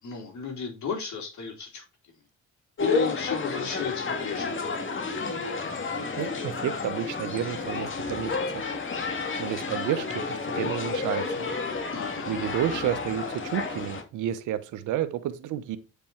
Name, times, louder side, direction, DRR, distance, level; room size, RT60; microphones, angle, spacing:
voice 1, 0.0-1.8 2.8-4.6 11.9-12.5, left 6 dB, 70° left, 3.7 m, -34 dB
sound 1, 2.8-14.0, left 4 dB, 40° left, 2.0 m, -31 dB
voice 2, 6.2-8.6 9.4-11.5 12.3-15.8, right 11 dB, 85° right, 1.0 m, -31 dB
8.7 x 5.3 x 4.5 m
cardioid pair, 90°, 30 cm